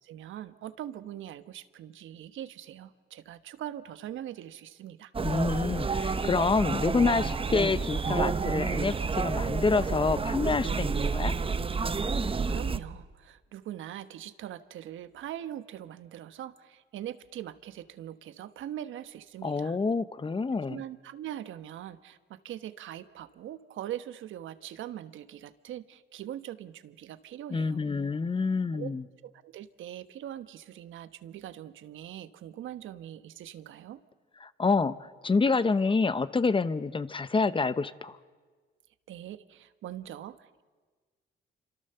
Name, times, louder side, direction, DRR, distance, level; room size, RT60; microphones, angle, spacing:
voice 1, 0.0-5.1 12.3-19.8 20.7-27.8 28.7-28.9 29.2-34.0 39.1-40.6, right 11 dB, 80° right, 12 dB, 1.2 m, -42 dB
sound 1, 5.1-12.8, right 4 dB, 25° right, 1.0 m, -29 dB
voice 2, 5.2-11.3 19.4-20.8 27.5-29.0 34.4-35.0 35.2-38.2, left 4 dB, 25° left, 14 dB, 0.9 m, -27 dB
27.5 x 25.5 x 6.9 m, 1.4 s
cardioid pair, 90°, 20 cm